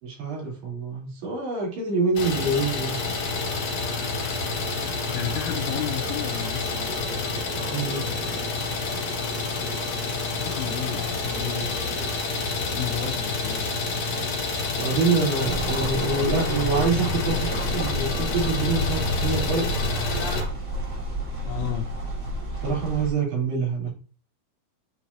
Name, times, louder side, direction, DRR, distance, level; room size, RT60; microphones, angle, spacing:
voice 1, 0.0-3.0 7.7-8.2 14.8-19.7 22.6-23.9, right 4 dB, 70° right, -5 dB, 5.2 m, -26 dB
Idling, 2.2-20.4, left 3 dB, 55° left, 2.3 m, -28 dB
voice 2, 5.1-7.1 10.4-11.7 12.7-14.0 21.4-21.9, left 11 dB, 75° left, 4 dB, 2.4 m, -32 dB
sound 1, 15.5-23.1, equal, 35° right, 1.9 m, -31 dB
9.9 x 4.5 x 2.7 m, 0.36 s
omnidirectional pair, 4.9 m